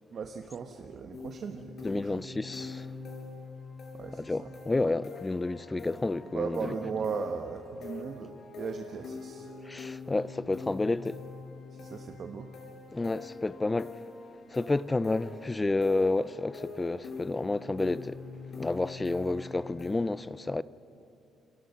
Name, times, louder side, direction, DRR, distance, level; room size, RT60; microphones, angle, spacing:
voice 1, 0.1-2.2 3.9-4.6 6.3-9.6 11.7-12.5, right 5 dB, 55° right, 1.4 m, -37 dB
sound 1, 1.1-19.9, left 4 dB, 65° left, 5.7 m, -44 dB
voice 2, 1.8-2.9 4.3-6.6 9.7-11.2 12.9-14.0 14.5-18.2 18.6-20.6, left 2 dB, 20° left, 0.6 m, -30 dB
28.5 x 23.0 x 5.9 m
cardioid pair, 90°, 0 cm